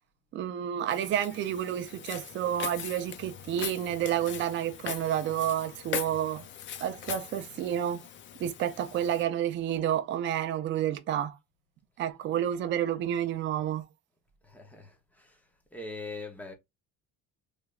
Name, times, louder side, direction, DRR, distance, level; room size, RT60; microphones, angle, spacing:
voice 1, 0.3-6.5 6.8-8.0 8.4-11.4 12.0-13.8, right 10 dB, 35° right, 0.4 m, -30 dB
Walk footsteps, 0.9-9.2, left 9 dB, 40° left, 0.4 m, -41 dB
voice 2, 14.4-15.4 15.7-16.5, left 3 dB, 5° left, 0.7 m, -42 dB
3.3 x 3.3 x 2.3 m
cardioid pair, 165°, 32 cm